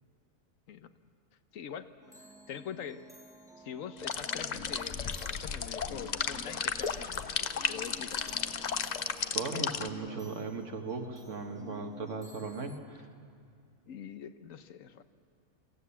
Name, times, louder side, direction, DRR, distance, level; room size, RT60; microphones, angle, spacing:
voice 1, 1.5-3.1 3.6-8.7 9.5-10.7 13.8-15.0, left 8 dB, 70° left, 11 dB, 1.1 m, -45 dB
sound 1, 2.0-12.8, equal, 5° right, 0.7 m, -53 dB
sound 2, 4.0-9.9, left 6 dB, 50° left, 0.5 m, -34 dB
voice 2, 9.3-13.1, right 4 dB, 60° right, 4 dB, 1.7 m, -38 dB
23.0 x 15.0 x 8.4 m, 2.2 s
omnidirectional pair, 1.4 m